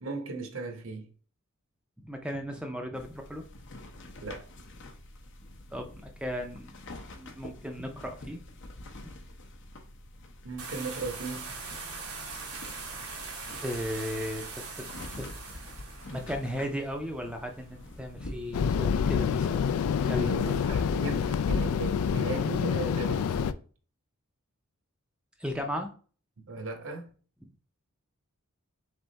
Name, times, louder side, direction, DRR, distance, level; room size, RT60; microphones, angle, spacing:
voice 1, 0.0-1.1 4.2-4.5 10.4-11.5 20.1-23.5 26.4-27.1, right 3 dB, 65° right, 0.8 m, -37 dB
voice 2, 2.0-3.4 5.7-8.4 9.0-9.1 13.6-15.7 16.1-19.7 20.0-20.8 25.4-25.9, equal, 5° right, 0.5 m, -36 dB
sound 1, 2.9-21.2, left 1 dB, 55° left, 0.7 m, -47 dB
sound 2, 10.6-18.7, right 4 dB, 90° right, 1.1 m, -42 dB
sound 3, 18.5-23.5, left 7 dB, 80° left, 0.3 m, -27 dB
3.6 x 3.4 x 3.9 m
head